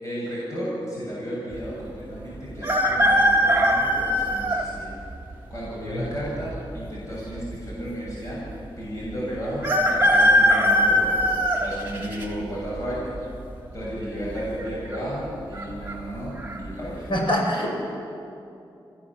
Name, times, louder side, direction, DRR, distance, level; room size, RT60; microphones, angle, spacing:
voice 1, 0.0-4.9 5.5-13.3 13.7-17.1, equal, 40° left, -7 dB, 7.1 m, -33 dB
sound 1, 2.6-4.6 5.3-5.4 6.5-7.1 7.4-7.5 7.7-7.8 9.6-12.2 12.8-13.2 14.3-14.7 14.9-15.0 15.5-15.9 16.4-16.6, equal, 25° right, 3.2 m, -20 dB
voice 2, 17.1-17.7, equal, 70° left, 0 dB, 5.7 m, -24 dB
26.5 x 16.0 x 7.5 m, 2.7 s
wide cardioid pair, 125°, 9 cm